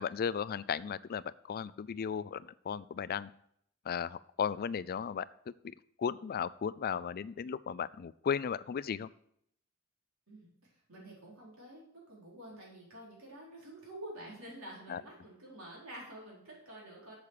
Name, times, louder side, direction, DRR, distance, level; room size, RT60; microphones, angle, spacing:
voice 1, 0.0-3.3 3.8-9.1 14.9-15.0, left 7 dB, 45° left, 17 dB, 0.3 m, -36 dB
voice 2, 10.9-17.1, right 1 dB, 70° right, -4 dB, 4.5 m, -49 dB
8.5 x 7.2 x 6.6 m, 0.71 s
head